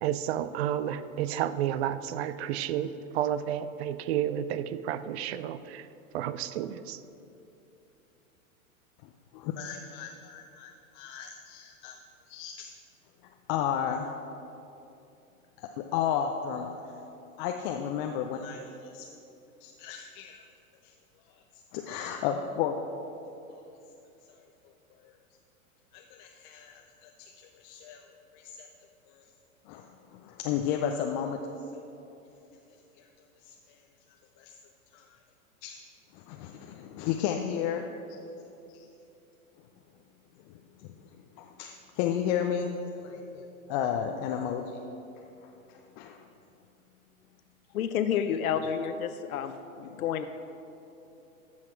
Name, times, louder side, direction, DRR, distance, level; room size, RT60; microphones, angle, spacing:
voice 1, 0.0-5.8 6.1-7.0, right 10 dB, 50° right, 14 dB, 0.5 m, -31 dB
voice 2, 9.3-12.0 12.3-12.7 13.5-14.1 15.6-16.8 17.4-19.1 19.6-20.4 20.8-20.9 21.7-22.7 25.9-27.3 27.6-28.0 28.3-28.7 29.7-31.5 33.4-33.5 34.4-34.5 34.9-35.0 35.6-35.8 36.1-37.8 38.7-38.8 41.4-44.7 45.7-46.2 48.6-48.7 49.9-50.1, left 8 dB, 35° left, 3 dB, 0.5 m, -33 dB
voice 3, 47.7-50.3, left 8 dB, 75° left, 9 dB, 0.6 m, -30 dB
14.5 x 5.7 x 4.5 m, 2.9 s
hypercardioid pair, 110°, 43 cm